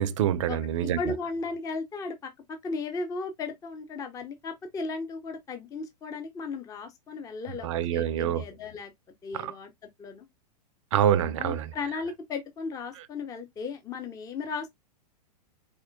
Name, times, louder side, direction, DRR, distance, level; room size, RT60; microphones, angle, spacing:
voice 1, 0.0-1.1 7.6-8.4 9.4-9.5 10.9-11.7, right 10 dB, 50° right, 0.5 m, -26 dB
voice 2, 1.0-2.3 2.6-8.9 9.2-9.7 10.0-10.3 11.4-14.7, left 4 dB, 15° left, 0.7 m, -35 dB
4.2 x 3.5 x 2.5 m
figure-of-eight pair, 100°, 21 cm